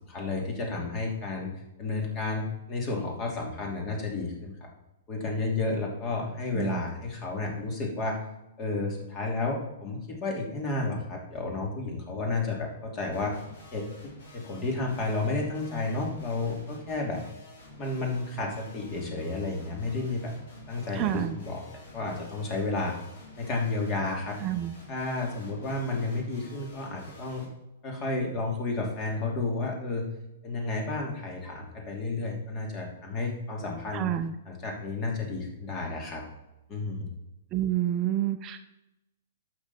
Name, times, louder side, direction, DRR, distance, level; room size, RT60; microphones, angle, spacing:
voice 1, 0.1-1.5 1.8-4.7 5.1-8.2 8.6-13.3 13.7-17.2 17.8-20.3 20.7-22.9 23.4-24.4 24.9-27.5 27.8-30.0 30.4-34.1 34.4-36.2 36.7-37.1, left 3 dB, 30° left, 0 dB, 3.0 m, -31 dB
sound 1, 13.1-27.4, left 1 dB, 60° left, 3.9 m, -50 dB
voice 2, 20.9-21.4 24.4-24.7 33.9-34.3 37.5-38.6, right 12 dB, 30° right, 9 dB, 0.6 m, -28 dB
11.5 x 7.6 x 4.3 m, 0.92 s
figure-of-eight pair, 110°, 0 cm